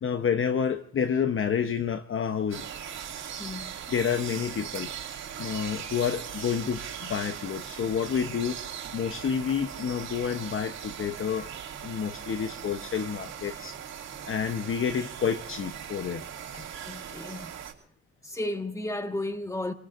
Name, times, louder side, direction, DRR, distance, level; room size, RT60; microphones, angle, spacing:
voice 1, 0.0-2.7 3.9-4.9 5.4-8.6 8.9-11.5 11.8-13.7 14.2-16.2 16.5-16.6, left 7 dB, 45° left, 0.9 m, -29 dB
sound 1, 2.5-17.7, right 8 dB, 60° right, 2.6 m, -39 dB
voice 2, 3.4-3.8 13.5-13.7 16.9-17.5 18.2-19.7, left 1 dB, 10° left, 1.5 m, -34 dB
29.5 x 19.5 x 2.5 m
cardioid pair, 90°, 30 cm